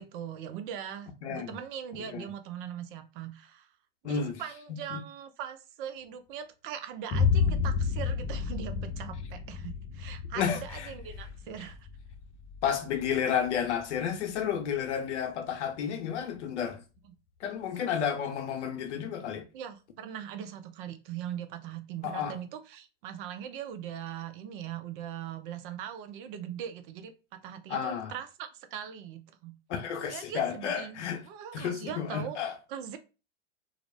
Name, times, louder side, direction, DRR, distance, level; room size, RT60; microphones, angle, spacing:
voice 1, 0.0-3.7 4.0-11.8 19.5-29.5 30.1-32.4 32.7-33.0, right 9 dB, 50° right, 0.5 m, -40 dB
voice 2, 1.2-1.5 2.1-2.3 4.0-4.4 4.7-5.0 10.4-10.9 12.6-16.8 17.4-19.4 22.0-22.3 27.7-28.1 29.7-31.2 31.5-32.5, left 8 dB, 75° left, 0.7 m, -31 dB
Boom, 7.1-14.9, left 6 dB, 30° left, 0.5 m, -32 dB
2.4 x 2.0 x 3.2 m
hypercardioid pair, 105°, 35 cm